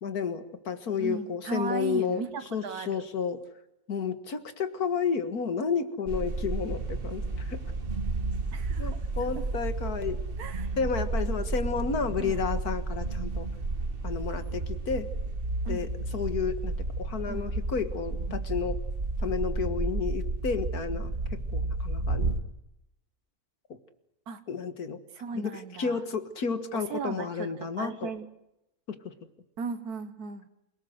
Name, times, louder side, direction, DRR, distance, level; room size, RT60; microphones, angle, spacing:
voice 1, 0.0-2.2 2.5-3.4 3.9-7.6 8.8-10.2 10.8-13.5 14.0-15.1 15.7-18.8 19.2-22.3 23.7-23.8 24.5-25.0 25.3-28.1 28.9-29.1, left 6 dB, 80° left, 10 dB, 2.2 m, -31 dB
voice 2, 1.0-3.0 8.5-9.0 9.4-9.5 10.4-10.8 12.2-12.4 15.7-15.9 17.3-17.5 24.3-24.4 25.1-26.0 26.7-28.3 29.6-30.5, right 5 dB, 80° right, 10 dB, 1.9 m, -37 dB
sound 1, 6.1-22.4, right 3 dB, 40° right, 1.8 m, -32 dB
28.5 x 18.5 x 7.9 m, 0.87 s
omnidirectional pair, 1.6 m